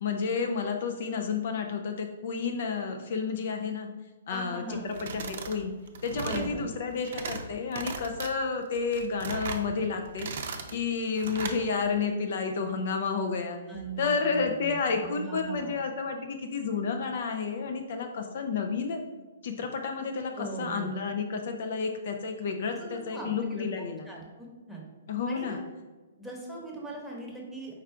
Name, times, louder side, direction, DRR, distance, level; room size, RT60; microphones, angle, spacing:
voice 1, 0.0-3.9 4.3-5.7 6.0-13.6 14.0-19.0 19.4-24.1 25.1-25.6, left 5 dB, 60° left, 4 dB, 0.4 m, -31 dB
voice 2, 4.3-4.8 6.2-6.6 13.7-15.8 20.4-20.9 22.8-23.7 24.1-24.8 25.3-25.6 26.2-27.8, right 2 dB, ahead, -3 dB, 1.0 m, -40 dB
sound 1, 4.9-5.6 5.9-6.5 6.9-7.4 7.7-8.3 8.8-9.6 10.1-10.7 11.1-11.6, right 5 dB, 60° right, 0.5 m, -37 dB
4.7 x 2.4 x 4.4 m, 1.3 s
hypercardioid pair, 130°, 0 cm